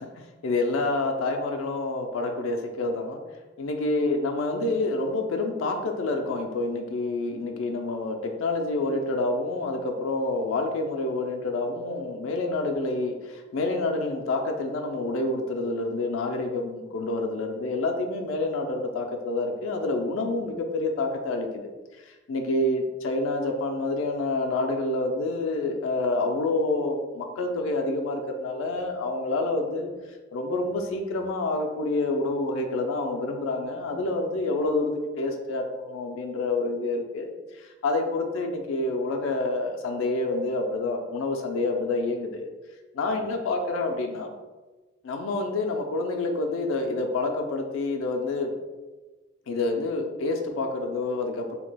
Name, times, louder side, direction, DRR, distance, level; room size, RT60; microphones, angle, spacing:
voice 1, 0.0-3.2 3.6-21.5 22.3-29.9 30.3-37.3 37.5-42.5 43.0-44.3 45.0-48.5 49.5-51.6, left 2 dB, 90° left, 3 dB, 0.4 m, -28 dB
2.8 x 2.2 x 3.3 m, 1.2 s
head